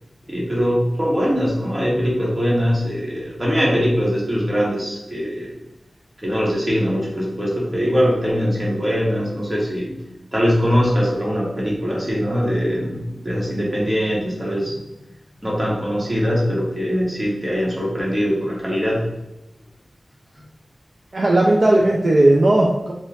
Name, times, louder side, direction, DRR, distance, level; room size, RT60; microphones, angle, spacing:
voice 1, 0.3-5.5 6.2-9.9 10.3-14.8 15.4-19.1, equal, 25° right, -5 dB, 1.5 m, -21 dB
voice 2, 21.1-22.9, right 1 dB, 55° right, -2 dB, 0.5 m, -16 dB
4.3 x 2.5 x 3.5 m, 0.91 s
wide cardioid pair, 65°, 0 cm